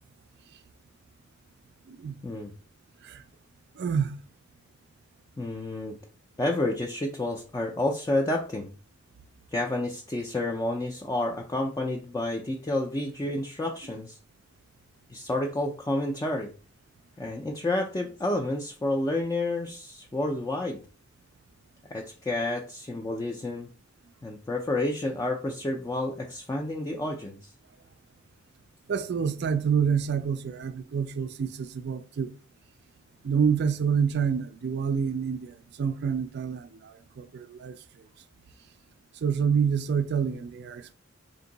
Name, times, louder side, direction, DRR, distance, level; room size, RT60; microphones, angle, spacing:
voice 1, 3.8-4.2 28.9-32.3 33.2-37.8 39.2-40.9, right 7 dB, 55° right, 0.4 m, -27 dB
voice 2, 5.4-5.9 6.4-8.7 9.5-14.2 15.1-16.5 17.2-20.8 21.9-23.7 24.2-27.5, left 1 dB, 15° left, 0.3 m, -30 dB
3.7 x 2.6 x 3.9 m
head